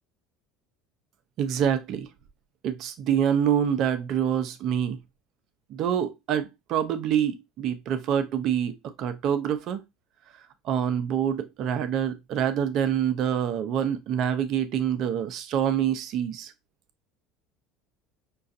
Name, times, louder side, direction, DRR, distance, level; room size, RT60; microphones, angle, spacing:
voice 1, 1.4-2.1 2.6-5.0 5.7-9.8 10.6-16.5, right 9 dB, 55° right, 0.7 m, -26 dB
5.6 x 2.4 x 2.6 m
supercardioid pair, 90°, 0 cm